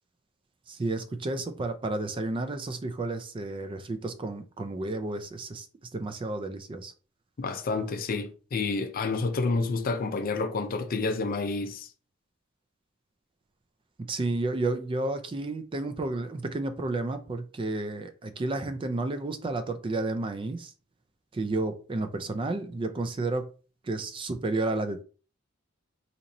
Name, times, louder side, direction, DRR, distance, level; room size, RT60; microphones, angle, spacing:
voice 1, 0.7-5.7 5.9-6.9 14.0-20.7 21.3-23.5 23.8-25.0, right 2 dB, 25° right, 0.3 m, -31 dB
voice 2, 7.4-11.9, left 3 dB, 45° left, 0.4 m, -29 dB
4.0 x 2.8 x 2.6 m
head